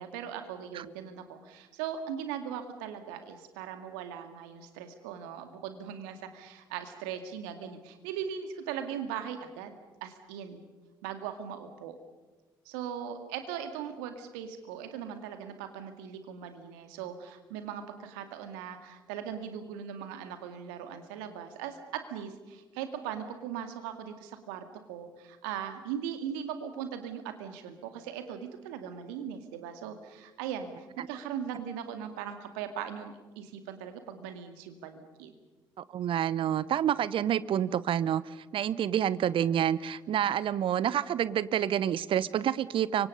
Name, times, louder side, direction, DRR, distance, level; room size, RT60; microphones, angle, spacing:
voice 1, 0.0-9.7 10.0-10.6 11.0-12.0 12.7-35.3, right 8 dB, 70° right, 8 dB, 2.1 m, -39 dB
voice 2, 35.8-38.2 38.5-43.1, right 10 dB, 50° right, 18 dB, 0.8 m, -28 dB
30.0 x 25.0 x 5.5 m, 1.2 s
figure-of-eight pair, 45°, 11 cm